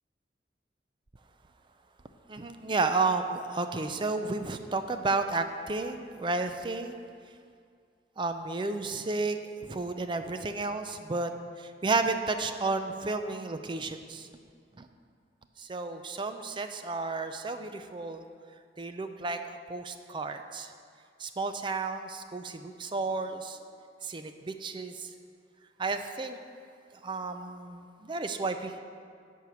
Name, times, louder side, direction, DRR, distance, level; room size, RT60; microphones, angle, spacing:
voice 1, 2.3-7.1 8.2-11.3 11.6-14.3 14.8-14.9 15.6-18.2 18.8-20.7 21.2-23.6 24.0-25.1 25.8-26.4 27.0-28.8, right 3 dB, 25° right, 8 dB, 0.5 m, -32 dB
10.5 x 4.7 x 6.9 m, 2.2 s
head